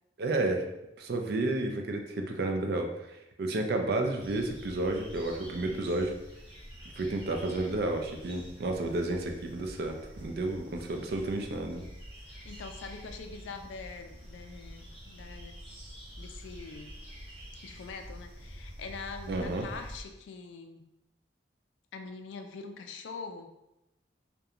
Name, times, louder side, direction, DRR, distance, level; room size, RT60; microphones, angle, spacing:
voice 1, 0.2-0.7 1.0-2.9 3.4-6.1 7.0-11.9 19.3-19.7, right 2 dB, 60° right, 4 dB, 0.4 m, -31 dB
sound 1, 4.2-20.0, equal, 30° right, 1.0 m, -47 dB
voice 2, 12.4-15.6 16.2-16.9 17.6-20.8 21.9-23.5, left 4 dB, 85° left, 6 dB, 0.3 m, -43 dB
2.8 x 2.2 x 2.4 m, 0.89 s
head